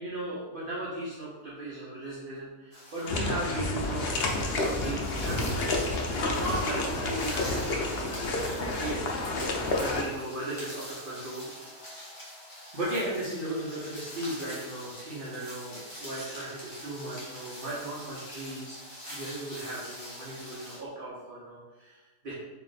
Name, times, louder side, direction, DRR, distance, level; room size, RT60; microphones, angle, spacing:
voice 1, 0.0-9.0 9.8-12.1 12.7-18.8 19.1-22.3, right 1 dB, 45° right, -8 dB, 0.8 m, -37 dB
sound 1, 2.7-20.8, equal, 25° left, 1.0 m, -44 dB
sound 2, 3.1-10.0, left 2 dB, 85° left, 0.5 m, -30 dB
3.1 x 2.9 x 4.0 m, 1.2 s
omnidirectional pair, 1.7 m